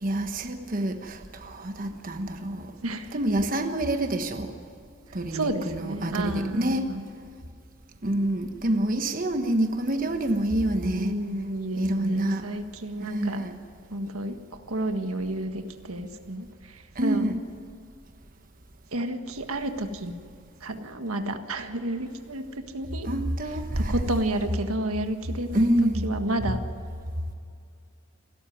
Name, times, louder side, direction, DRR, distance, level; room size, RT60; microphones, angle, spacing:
voice 1, 0.0-2.7 3.1-4.5 5.1-6.8 8.0-11.1 11.8-12.4 13.0-13.6 17.0-17.4 23.0-23.9 25.5-26.1, right 1 dB, 40° right, 6 dB, 1.2 m, -27 dB
voice 2, 2.8-3.2 5.3-7.1 10.8-13.4 13.9-17.2 18.9-20.1 20.6-23.1 23.5-25.7 26.0-26.6, right 1 dB, 90° right, 6 dB, 1.7 m, -31 dB
28.0 x 13.0 x 9.4 m, 2.5 s
head